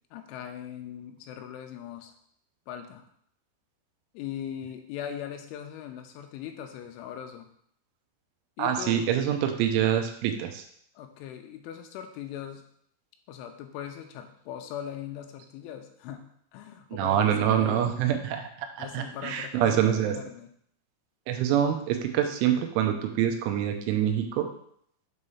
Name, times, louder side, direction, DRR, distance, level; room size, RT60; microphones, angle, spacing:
voice 1, 0.1-2.1 2.7-3.0 4.1-7.5 8.6-9.0 11.0-12.6 13.3-16.3 16.5-17.9 18.8-20.5, left 9 dB, 90° left, 5 dB, 3.2 m, -40 dB
voice 2, 8.6-10.6 16.9-20.2 21.3-24.5, right 10 dB, 85° right, 5 dB, 3.3 m, -26 dB
8.0 x 3.3 x 5.5 m, 0.66 s
omnidirectional pair, 5.5 m